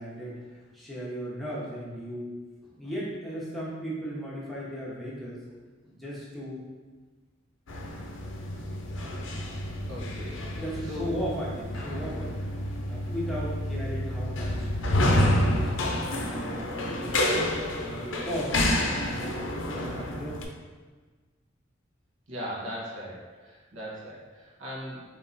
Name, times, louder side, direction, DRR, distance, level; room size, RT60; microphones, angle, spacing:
voice 1, 0.0-5.4 5.8-6.6 8.5-8.8 10.5-14.7 15.0-17.4 17.8-20.4, equal, ahead, -8 dB, 0.9 m, -37 dB
sound 1, 7.7-20.4, left 1 dB, 70° left, 0.5 m, -29 dB
voice 2, 9.9-11.2 22.3-25.0, equal, 80° right, -5 dB, 1.2 m, -39 dB
3.7 x 2.9 x 4.0 m, 1.4 s
head